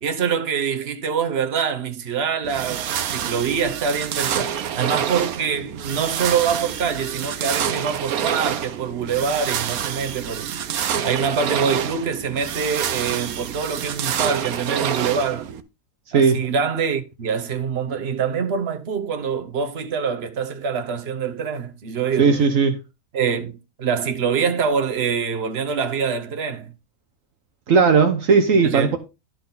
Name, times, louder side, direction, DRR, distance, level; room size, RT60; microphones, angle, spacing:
voice 1, 0.0-10.5 11.0-15.5 16.1-22.4 23.1-26.7 28.6-29.0, right 6 dB, 45° right, 1.5 m, -25 dB
sound 1, 2.4-15.6, right 9 dB, 85° right, 1.3 m, -27 dB
voice 2, 16.1-16.4 22.2-22.8 27.7-29.0, right 5 dB, 65° right, 1.4 m, -16 dB
12.0 x 6.3 x 3.9 m
omnidirectional pair, 1.5 m